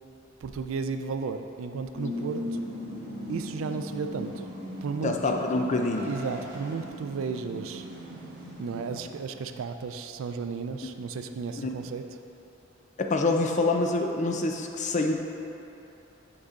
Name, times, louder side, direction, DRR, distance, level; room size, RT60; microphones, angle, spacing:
voice 1, 0.4-2.6 3.3-4.3 4.8-5.1 6.1-7.8 8.6-12.0, right 5 dB, 90° right, 8 dB, 0.4 m, -34 dB
sound 1, 1.9-9.0, equal, 60° right, 1.4 m, -38 dB
Car, 4.5-6.7, right 1 dB, 10° right, 1.1 m, -46 dB
voice 2, 5.0-6.1 11.6-11.7 13.0-15.1, left 2 dB, 35° left, 3 dB, 0.4 m, -26 dB
6.5 x 4.7 x 3.7 m, 2.9 s
head